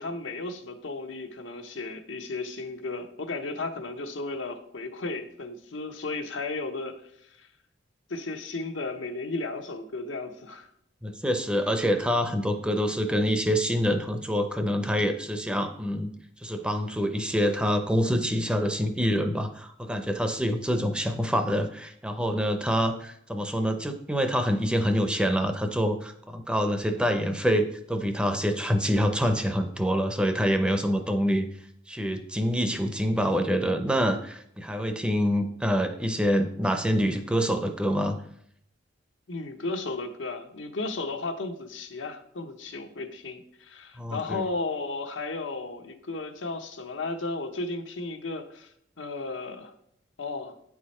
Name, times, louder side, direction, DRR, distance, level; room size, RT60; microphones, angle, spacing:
voice 1, 0.0-7.0 7.4-7.5 8.1-10.7 30.9-31.0 39.3-48.7 49.0-49.7 50.2-50.5, left 3 dB, 90° left, 6 dB, 0.9 m, -34 dB
voice 2, 11.0-16.1 16.4-31.5 31.9-38.2 44.0-44.4, equal, 5° right, 7 dB, 0.5 m, -26 dB
8.6 x 4.8 x 4.2 m, 0.71 s
head